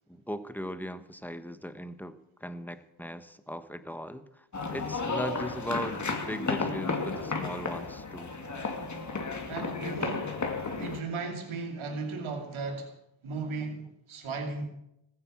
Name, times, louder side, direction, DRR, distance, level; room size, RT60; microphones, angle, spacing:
voice 1, 0.1-2.1 2.4-8.3, equal, 5° left, 10 dB, 1.3 m, -38 dB
sound 1, 4.5-11.0, left 4 dB, 35° left, 2.4 m, -33 dB
voice 2, 9.5-10.3 10.8-12.9 13.2-14.7, right 3 dB, 70° right, 3 dB, 2.7 m, -36 dB
15.0 x 9.7 x 7.3 m, 0.82 s
cardioid pair, 75°, 50 cm